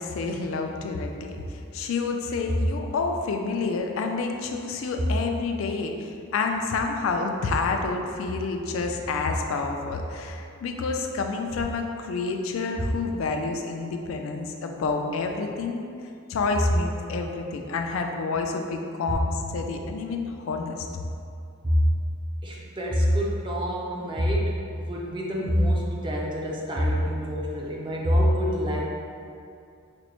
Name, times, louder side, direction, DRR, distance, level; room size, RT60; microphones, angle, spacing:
voice 1, 0.0-1.4 1.7-15.8 16.3-20.8, left 4 dB, 70° left, 3 dB, 0.3 m, -29 dB
voice 2, 22.4-28.8, equal, 25° right, -3 dB, 0.4 m, -25 dB
5.1 x 2.1 x 2.9 m, 2.5 s
head